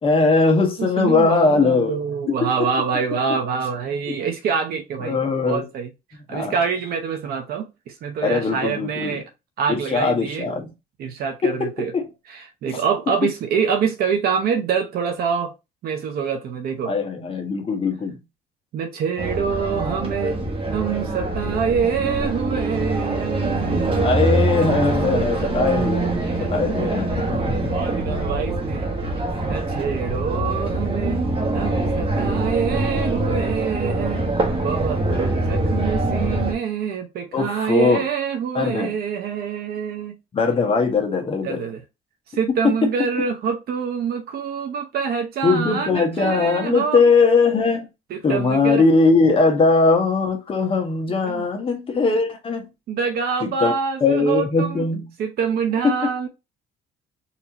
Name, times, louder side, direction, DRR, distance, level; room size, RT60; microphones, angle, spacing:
voice 1, 0.0-2.0 2.3-2.5 4.1-4.2 5.0-5.7 6.3-6.6 8.2-9.2 9.7-10.7 11.4-12.1 12.7-12.8 16.9-18.2 24.0-27.5 28.1-28.2 29.4-29.7 37.3-38.1 38.5-38.9 40.3-41.6 42.6-42.9 45.4-47.9 48.2-52.7 53.4-53.7 54.0-55.1 55.8-55.9, left 4 dB, 30° left, 1.2 m, -20 dB
voice 2, 0.8-5.2 5.4-5.9 6.3-9.3 9.6-10.4 11.0-11.9 12.3-15.5 15.8-16.9 18.7-20.4 20.7-25.0 25.3-25.5 26.2-27.2 27.7-28.9 29.4-31.2 31.5-34.2 34.6-40.1 41.4-41.8 42.3-47.0 48.1-48.8 51.2-51.5 52.9-54.8 55.2-56.3, right 6 dB, 65° right, 0.8 m, -26 dB
sound 1, 19.2-36.5, right 2 dB, 30° right, 1.3 m, -24 dB
4.3 x 2.8 x 2.8 m
cardioid pair, 110°, 17 cm